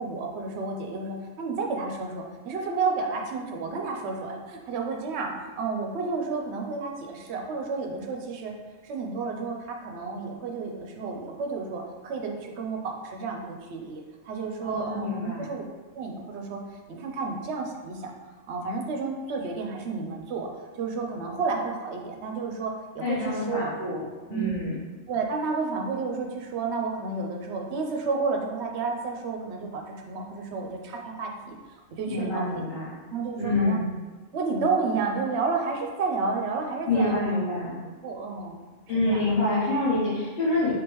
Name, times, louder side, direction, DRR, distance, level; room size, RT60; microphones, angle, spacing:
voice 1, 0.0-8.5 8.8-15.6 15.9-16.6 16.9-18.1 18.5-23.7 24.3-24.6 25.1-31.5 32.0-32.7 33.1-33.8 34.3-37.3 38.0-38.6 38.9-39.2, right 4 dB, 65° right, 2 dB, 0.8 m, -31 dB
voice 2, 14.6-15.5 23.0-24.0 24.3-24.8 32.1-32.9 33.4-33.8 36.9-37.8 38.9-40.7, left 2 dB, 50° left, -9 dB, 1.0 m, -27 dB
3.5 x 3.4 x 2.9 m, 1.3 s
omnidirectional pair, 1.4 m